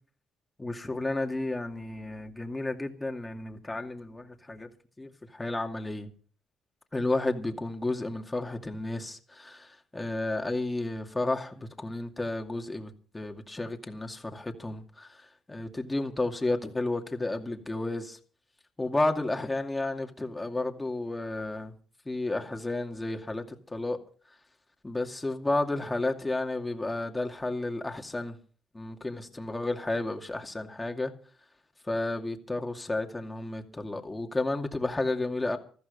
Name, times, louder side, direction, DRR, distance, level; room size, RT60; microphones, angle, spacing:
voice 1, 0.6-4.7 5.0-6.1 6.9-18.2 18.8-21.7 22.1-24.0 24.8-28.4 28.7-31.1 31.9-35.6, left 2 dB, 15° left, 2.3 m, -32 dB
14.5 x 13.5 x 5.4 m
cardioid pair, 90°, 0 cm